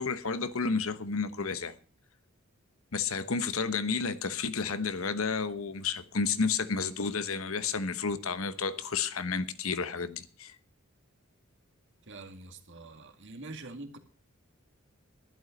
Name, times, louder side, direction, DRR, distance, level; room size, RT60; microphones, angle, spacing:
voice 1, 0.0-1.7 2.9-10.5, left 5 dB, 70° left, 1.0 m, -31 dB
voice 2, 12.1-14.0, right 2 dB, 60° right, 2.1 m, -45 dB
12.0 x 11.5 x 5.1 m
head